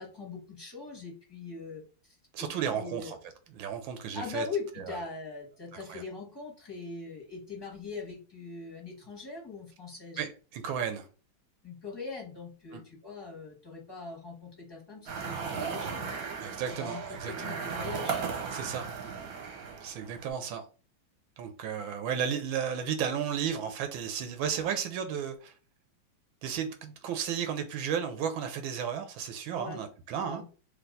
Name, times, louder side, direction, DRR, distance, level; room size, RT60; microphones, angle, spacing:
voice 1, 0.0-3.1 4.1-10.3 11.6-16.2 16.7-18.2 29.6-29.8 30.2-30.4, left 4 dB, 15° left, 1.0 m, -41 dB
voice 2, 2.3-3.2 3.5-4.5 4.8-4.9 5.9-6.0 10.2-11.1 12.7-12.8 16.4-17.6 18.5-18.9 19.8-20.6 21.4-25.5 26.4-30.4, right 8 dB, 85° right, 1.4 m, -33 dB
sound 1, 15.1-20.3, right 6 dB, 60° right, 1.1 m, -36 dB
3.4 x 3.0 x 3.8 m
omnidirectional pair, 2.2 m